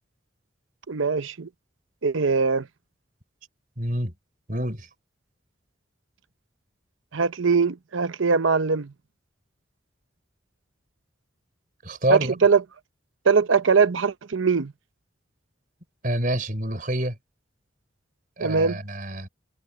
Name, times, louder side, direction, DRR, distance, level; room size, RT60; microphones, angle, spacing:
voice 1, 0.9-1.5 2.0-2.7 7.1-8.9 12.1-12.6 13.2-14.7 18.4-18.8, right 5 dB, 90° right, 0.8 m, -21 dB
voice 2, 3.8-4.1 4.5-4.9 11.8-12.4 16.0-17.1 18.4-19.3, right 1 dB, 45° right, 4.6 m, -26 dB
head